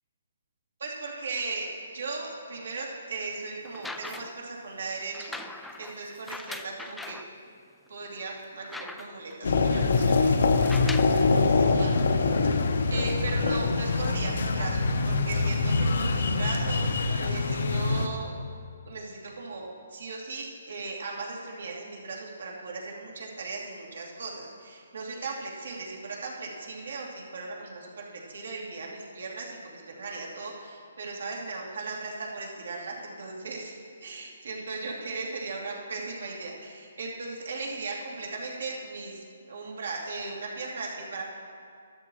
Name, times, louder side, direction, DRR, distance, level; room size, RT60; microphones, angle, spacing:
voice 1, 0.8-5.4 5.8-7.2 7.9-18.3 18.8-33.8 34.0-41.2, right 3 dB, 70° right, -3 dB, 2.7 m, -37 dB
sound 1, 3.6-4.5 5.1-7.3 7.9-8.0 8.3-9.3 10.5-11.2 12.2-12.3, left 2 dB, 5° left, 0.3 m, -40 dB
sound 2, 9.4-18.1, left 3 dB, 70° left, 0.9 m, -24 dB
13.0 x 13.0 x 3.1 m, 2.2 s
hypercardioid pair, 165°, 0 cm